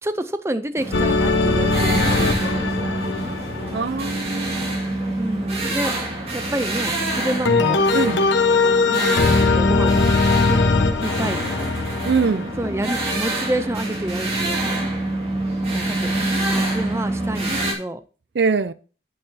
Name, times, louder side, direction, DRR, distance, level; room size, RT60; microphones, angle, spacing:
voice 1, 0.0-2.9 5.2-6.0 6.3-7.9 8.9-10.6 11.0-11.7 12.6-14.8 15.7-18.0, right 1 dB, 15° right, 0.5 m, -29 dB
sound 1, 0.8-17.7, right 2 dB, 35° right, 2.1 m, -26 dB
sound 2, 0.9-5.0 7.4-13.1, left 3 dB, 85° left, 1.0 m, -20 dB
voice 2, 3.7-4.8 7.9-8.3 12.1-12.5 18.3-18.7, right 5 dB, 70° right, 0.5 m, -23 dB
8.9 x 8.5 x 2.7 m
head